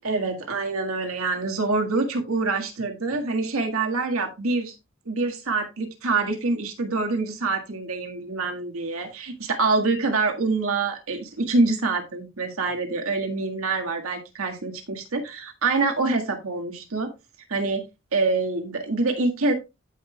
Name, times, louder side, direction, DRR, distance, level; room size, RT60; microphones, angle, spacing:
voice 1, 0.0-4.7 5.0-17.1 17.5-17.8 18.1-19.5, right 3 dB, 90° right, 3 dB, 1.7 m, -25 dB
15.5 x 5.4 x 2.3 m, 0.25 s
head